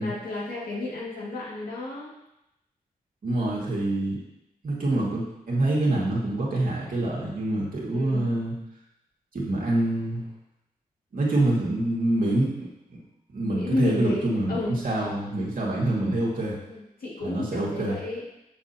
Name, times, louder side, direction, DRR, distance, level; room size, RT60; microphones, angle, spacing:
voice 1, 0.0-2.1 7.9-8.3 13.5-14.8 16.7-18.2, left 2 dB, 70° left, -5 dB, 2.2 m, -32 dB
voice 2, 3.2-4.2 4.6-8.6 9.3-10.3 11.1-12.7 13.3-16.6 17.2-18.0, right 1 dB, 65° right, -4 dB, 2.2 m, -26 dB
6.7 x 6.2 x 2.9 m, 0.87 s
cardioid pair, 50°, 16 cm